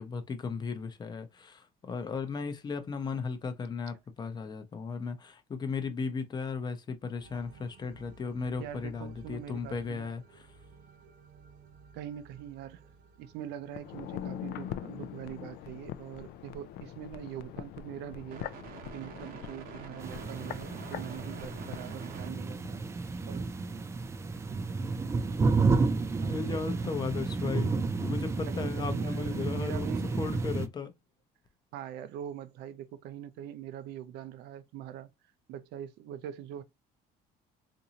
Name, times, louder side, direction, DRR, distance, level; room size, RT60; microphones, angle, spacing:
voice 1, 0.0-10.5 26.2-29.9 30.2-30.9, left 5 dB, 25° left, 0.6 m, -36 dB
sound 1, 7.2-22.3, right 6 dB, 60° right, 0.9 m, -52 dB
voice 2, 8.6-10.1 11.9-12.9 13.2-18.5 18.9-22.8 23.3-23.8 26.1-26.8 28.5-30.2 31.7-35.1 35.5-36.6, right 10 dB, 80° right, 0.5 m, -43 dB
sound 2, 13.7-22.8 23.0-23.1, left 11 dB, 70° left, 0.4 m, -43 dB
sound 3, 20.0-30.7, right 4 dB, 15° right, 0.3 m, -31 dB
3.9 x 2.6 x 2.8 m
cardioid pair, 155°, 17 cm